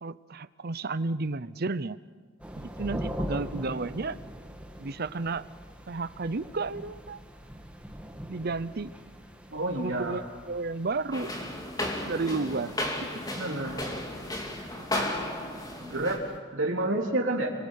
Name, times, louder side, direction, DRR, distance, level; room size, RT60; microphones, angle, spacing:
voice 1, 0.0-2.0 2.6-4.2 4.8-5.4 5.9-7.2 8.3-8.9 9.8-11.3 12.0-12.8, right 3 dB, 50° right, 15 dB, 0.7 m, -32 dB
sound 1, 2.4-16.4, equal, 5° right, 2.0 m, -43 dB
voice 2, 9.5-10.2 13.3-13.8 14.7-15.2 15.8-17.5, right 2 dB, 70° right, 1 dB, 3.7 m, -30 dB
sound 2, 11.1-16.2, left 1 dB, 20° left, 3.4 m, -34 dB
27.0 x 24.0 x 6.6 m, 1.5 s
head